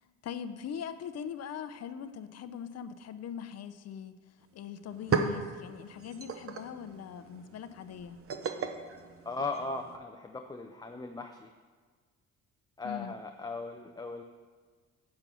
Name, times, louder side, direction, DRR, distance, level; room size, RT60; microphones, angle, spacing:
voice 1, 0.2-4.2 4.5-8.2 12.8-13.1, left 8 dB, 55° left, 11 dB, 0.6 m, -41 dB
sound 1, 4.4-4.5 4.8-10.0, right 5 dB, 50° right, 0.8 m, -36 dB
voice 2, 9.2-11.5 12.8-14.2, left 3 dB, 15° left, 4 dB, 0.5 m, -38 dB
7.6 x 6.1 x 6.8 m, 1.5 s
cardioid pair, 90°, 30 cm